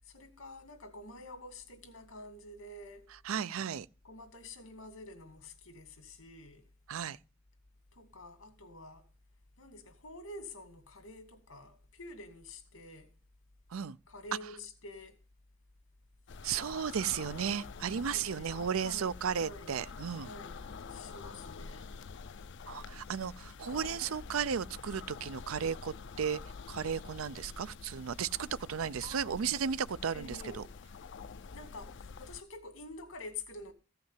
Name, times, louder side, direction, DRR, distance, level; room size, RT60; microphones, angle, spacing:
voice 1, 0.1-3.1 4.0-6.6 7.9-9.1 9.6-13.1 14.1-15.2 18.1-19.8 20.2-21.9 29.0-29.4 30.1-30.7 31.5-33.7, left 2 dB, 80° left, 2.3 m, -48 dB
voice 2, 3.2-3.9 6.9-7.2 13.7-14.0 16.4-20.3 22.7-26.4 26.7-30.6, right 7 dB, 85° right, 0.5 m, -34 dB
sound 1, 16.3-32.4, left 5 dB, 60° left, 0.5 m, -47 dB
15.0 x 5.7 x 7.4 m
head